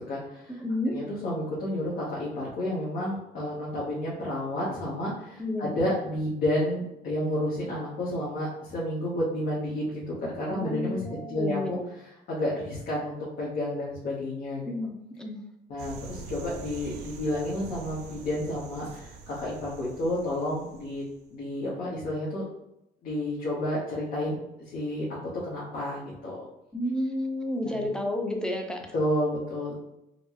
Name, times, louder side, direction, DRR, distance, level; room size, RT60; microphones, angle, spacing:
voice 1, 0.1-0.5 0.9-11.8 12.3-14.7 15.7-21.0 21.3-22.4 23.0-26.4 27.6-27.8 28.9-29.7, left 1 dB, 60° left, -7 dB, 1.1 m, -31 dB
voice 2, 0.6-0.9 5.4-5.8 10.5-11.8 14.6-15.4 26.7-28.9, left 1 dB, 5° left, 2 dB, 0.6 m, -31 dB
sound 1, 15.8-21.2, right 4 dB, 75° right, 0.5 m, -44 dB
4.3 x 2.1 x 2.8 m, 0.85 s
cardioid pair, 110°, 17 cm